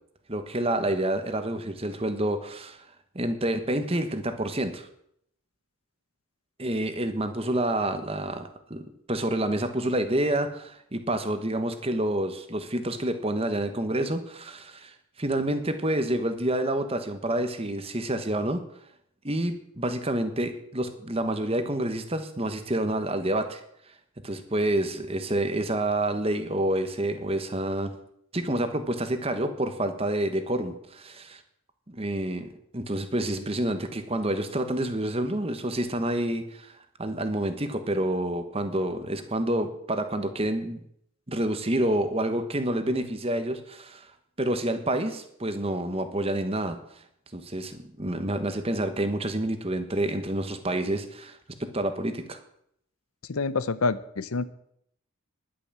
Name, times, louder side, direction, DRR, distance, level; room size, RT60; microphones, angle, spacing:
voice 1, 0.3-2.9 3.1-4.9 6.6-18.6 19.2-23.6 24.2-27.9 28.3-31.4 31.9-32.5 32.7-36.7 37.0-40.8 41.3-44.1 44.4-46.8 47.3-52.4, right 1 dB, 25° right, 8 dB, 1.2 m, -28 dB
voice 2, 53.3-54.5, left 4 dB, 75° left, 15 dB, 0.8 m, -27 dB
11.0 x 8.9 x 7.4 m, 0.72 s
head